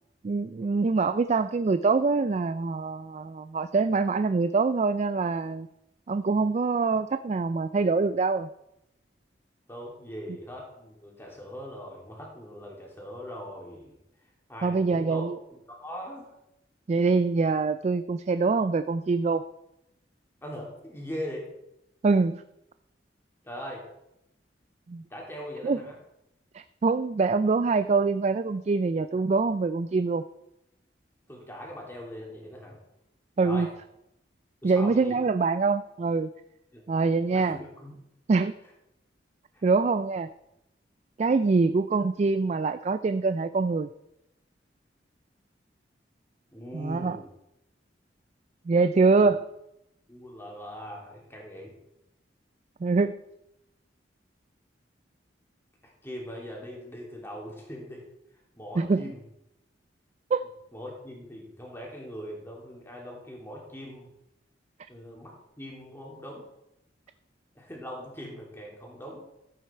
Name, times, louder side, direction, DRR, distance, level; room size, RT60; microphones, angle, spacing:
voice 1, 0.2-5.7 6.1-8.5 14.6-15.4 16.9-19.4 22.0-22.4 24.9-25.0 25.6-25.8 26.5-30.2 33.4-33.7 34.6-36.3 36.9-37.6 38.3-38.6 39.6-40.3 41.2-43.9 46.7-47.2 48.7-49.5 52.8-53.2 58.8-59.1 60.3-60.4, right 4 dB, 40° right, 12 dB, 0.3 m, -24 dB
voice 2, 9.7-14.0 14.5-15.2 15.5-16.3 20.4-21.5 23.4-23.8 25.1-26.0 31.3-32.8 33.4-33.7 34.6-35.2 36.7-36.8 37.3-37.9 39.5-39.6 46.5-47.3 49.2-49.3 50.1-51.7 56.0-58.0 58.6-59.2 60.7-64.1 64.9-66.5 67.5-69.3, equal, 15° left, -2 dB, 2.8 m, -41 dB
14.0 x 8.4 x 4.4 m, 0.87 s
head